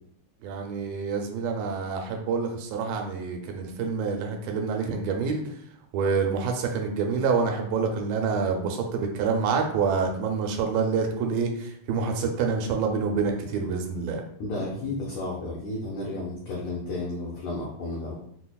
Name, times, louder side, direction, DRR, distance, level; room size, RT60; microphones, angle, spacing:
voice 1, 0.4-5.4 5.9-14.2, right 5 dB, 80° right, 3 dB, 2.2 m, -27 dB
voice 2, 14.4-18.2, left 2 dB, 85° left, -4 dB, 1.6 m, -32 dB
5.7 x 2.0 x 2.3 m, 0.70 s
omnidirectional pair, 4.0 m